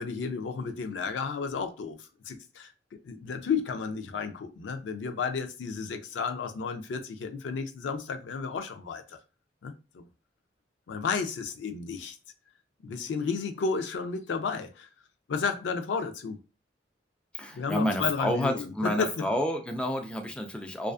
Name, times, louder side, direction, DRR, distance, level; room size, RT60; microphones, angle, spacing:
voice 1, 0.0-2.7 3.0-9.2 9.6-10.1 10.9-12.2 12.8-14.9 15.3-16.4 17.5-19.3, left 5 dB, 80° left, 0.4 m, -32 dB
voice 2, 17.3-20.9, equal, 5° left, 0.3 m, -29 dB
2.4 x 2.3 x 2.3 m
head